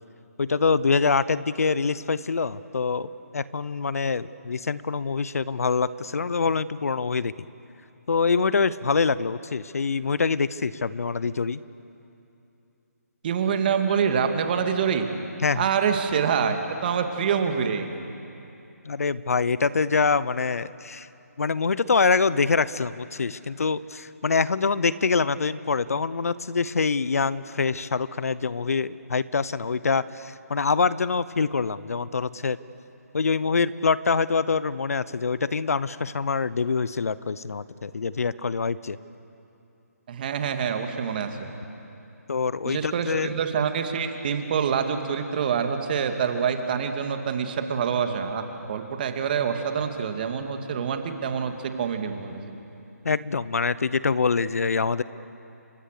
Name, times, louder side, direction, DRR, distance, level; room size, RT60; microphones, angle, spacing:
voice 1, 0.4-7.3 8.1-11.6 15.4-15.7 18.8-21.1 21.4-32.6 33.1-39.0 42.3-43.3 53.0-55.0, left 5 dB, 65° left, 17 dB, 0.9 m, -25 dB
voice 2, 13.2-15.1 15.6-17.9 40.1-41.5 42.6-51.5 51.8-52.5, right 7 dB, 35° right, 6 dB, 2.3 m, -26 dB
29.5 x 25.5 x 6.8 m, 2.8 s
figure-of-eight pair, 155°, 9 cm